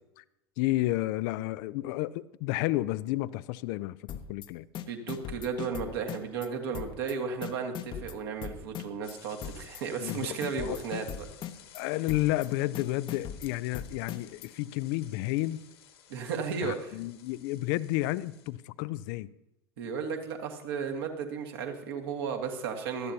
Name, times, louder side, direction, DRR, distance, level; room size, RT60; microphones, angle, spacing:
voice 1, 0.6-4.7 10.0-10.8 11.7-15.6 16.6-19.3, left 17 dB, 50° left, 0.4 m, -31 dB
sound 1, 4.1-4.5 4.7-6.5 6.7-7.1 7.4-9.1 9.4-9.8 10.1-11.8 12.1-12.5 12.7-14.5, left 9 dB, 35° left, 0.8 m, -39 dB
voice 2, 4.9-11.3 16.1-17.0 19.8-23.1, right 5 dB, 60° right, 1.8 m, -34 dB
sound 2, 9.0-18.5, left 10 dB, 65° left, 1.6 m, -55 dB
18.5 x 13.0 x 2.8 m
figure-of-eight pair, 75°, 14 cm